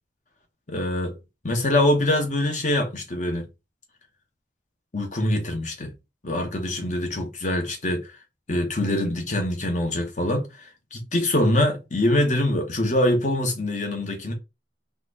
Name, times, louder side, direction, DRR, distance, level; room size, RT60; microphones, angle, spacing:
voice 1, 0.7-1.1 1.4-3.5 4.9-5.9 6.2-8.1 8.5-14.3, left 1 dB, 45° left, 1.2 m, -24 dB
4.3 x 2.6 x 4.0 m
head